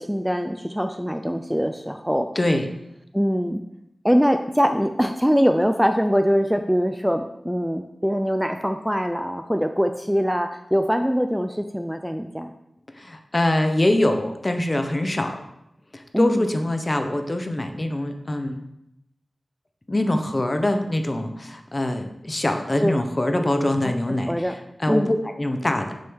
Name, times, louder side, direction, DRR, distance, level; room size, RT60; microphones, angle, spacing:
voice 1, 0.0-2.3 3.1-3.6 4.0-12.5 16.1-16.5 22.8-23.0 23.8-23.9 24.3-24.5 24.9-25.2, equal, ahead, 6 dB, 0.4 m, -23 dB
voice 2, 2.4-2.7 13.0-15.4 15.9-18.6 19.9-25.9, left 1 dB, 35° left, 6 dB, 0.7 m, -24 dB
6.2 x 4.4 x 3.6 m, 0.83 s
cardioid pair, 45°, 0 cm